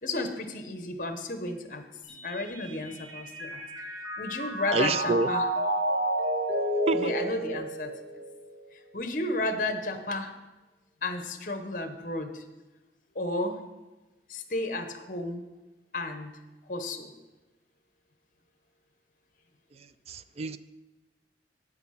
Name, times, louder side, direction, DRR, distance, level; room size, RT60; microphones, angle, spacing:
voice 1, 0.0-1.8 2.1-3.6 4.2-5.5 6.9-7.9 8.7-10.3 11.0-12.4 13.1-13.6 14.3-15.4 15.9-16.3 16.7-17.1, left 2 dB, 45° left, 7 dB, 1.0 m, -33 dB
Mallet percussion, 2.1-8.5, right 1 dB, 70° right, 1.9 m, -31 dB
voice 2, 4.7-5.3 6.9-7.1 20.1-20.6, right 4 dB, 35° right, 14 dB, 0.3 m, -27 dB
8.3 x 8.1 x 5.7 m, 1.1 s
head